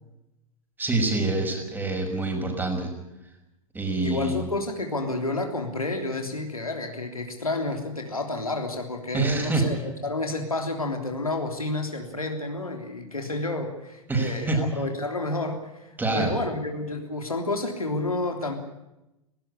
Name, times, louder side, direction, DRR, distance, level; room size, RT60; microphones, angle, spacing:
voice 1, 0.8-2.9 3.7-4.4 9.1-9.6 14.1-14.7 16.0-16.3, right 2 dB, 10° right, 3 dB, 5.9 m, -26 dB
voice 2, 4.0-15.9 16.1-18.5, left 2 dB, 85° left, 4 dB, 3.3 m, -30 dB
19.0 x 18.0 x 9.9 m, 0.91 s
figure-of-eight pair, 90°, 18 cm